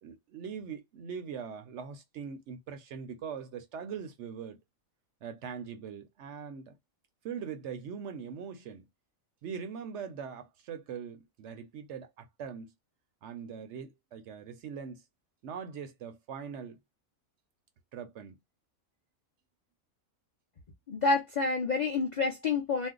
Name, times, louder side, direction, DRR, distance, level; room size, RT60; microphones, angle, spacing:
voice 1, 0.0-4.6 5.2-6.7 7.2-8.9 9.4-12.7 13.2-15.0 15.4-16.8 17.9-18.4, right 7 dB, 65° right, 0.8 m, -41 dB
voice 2, 20.9-22.9, left 4 dB, 55° left, 0.5 m, -28 dB
2.6 x 2.0 x 3.6 m
omnidirectional pair, 1.4 m